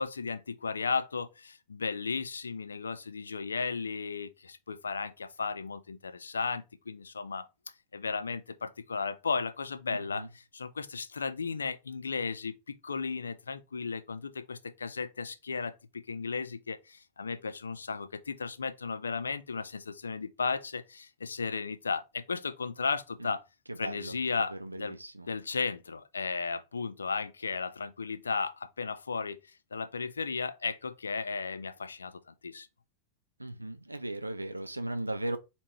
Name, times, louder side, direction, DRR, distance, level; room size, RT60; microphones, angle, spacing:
voice 1, 0.0-7.5 7.9-23.4 23.8-25.0 25.3-32.7, left 5 dB, 75° left, 0.5 m, -35 dB
voice 2, 23.7-24.1 24.6-25.3 33.4-35.4, right 1 dB, 85° right, 0.5 m, -37 dB
3.6 x 2.2 x 4.3 m
figure-of-eight pair, 90°, 0 cm